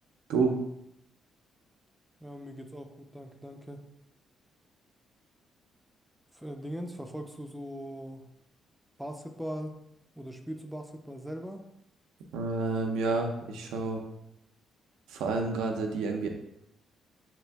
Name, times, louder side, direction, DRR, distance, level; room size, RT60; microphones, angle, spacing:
voice 1, 2.2-3.8 6.3-8.3 9.0-9.8 10.2-11.7, equal, ahead, 5 dB, 0.4 m, -40 dB
voice 2, 12.3-14.0 15.1-16.3, right 4 dB, 90° right, 3 dB, 0.5 m, -29 dB
3.0 x 2.5 x 3.3 m, 0.83 s
cardioid pair, 90°, 0 cm